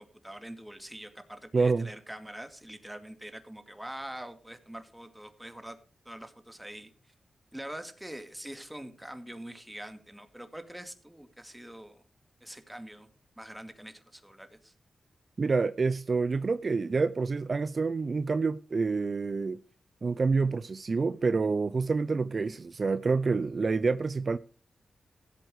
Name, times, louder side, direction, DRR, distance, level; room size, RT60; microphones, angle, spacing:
voice 1, 0.0-5.8 6.1-6.9 7.5-12.0 12.4-13.1 13.4-14.7, right 1 dB, 5° right, 2.3 m, -44 dB
voice 2, 1.5-1.9 15.4-19.6 20.0-24.4, right 4 dB, 50° right, 0.5 m, -27 dB
16.0 x 7.8 x 4.8 m
cardioid pair, 60°, 0 cm